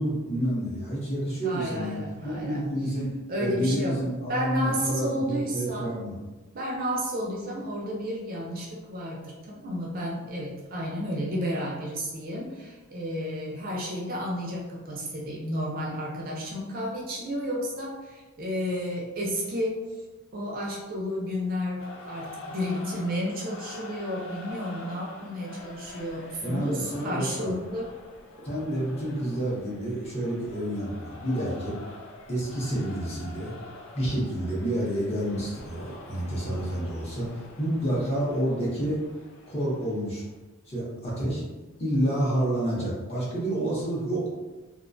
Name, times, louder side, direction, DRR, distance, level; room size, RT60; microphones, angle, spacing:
voice 1, 0.0-3.1 3.4-6.2 26.4-27.5 28.4-31.7 32.3-33.5 33.9-39.0 39.5-40.2 40.7-41.5 41.8-44.3, right 1 dB, 30° left, -7 dB, 0.7 m, -29 dB
voice 2, 1.4-2.6 3.3-4.0 4.3-6.0 6.5-19.8 20.3-27.9, equal, 40° right, -3 dB, 0.4 m, -32 dB
sound 1, 21.8-40.3, left 2 dB, 60° left, 0.4 m, -45 dB
2.3 x 2.1 x 2.5 m, 1.2 s
head